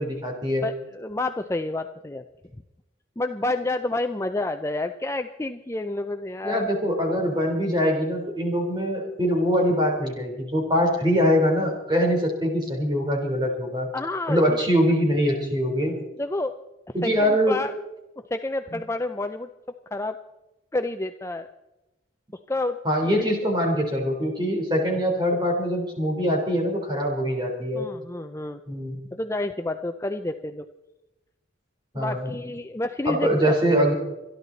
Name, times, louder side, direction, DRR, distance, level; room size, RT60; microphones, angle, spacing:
voice 1, 0.0-0.7 6.4-13.9 14.3-16.0 16.9-17.6 18.7-18.8 22.8-27.9 28.7-29.0 31.9-32.3 33.0-33.9, equal, 20° right, 0 dB, 3.8 m, -23 dB
voice 2, 0.6-2.2 3.2-6.7 13.9-14.6 16.2-16.6 17.0-17.7 18.3-19.5 19.9-20.2 20.7-21.5 22.5-22.8 23.0-23.4 27.7-28.6 29.1-30.6 31.9-33.6, left 2 dB, 15° left, 7 dB, 0.5 m, -29 dB
26.0 x 11.0 x 4.1 m, 0.98 s
head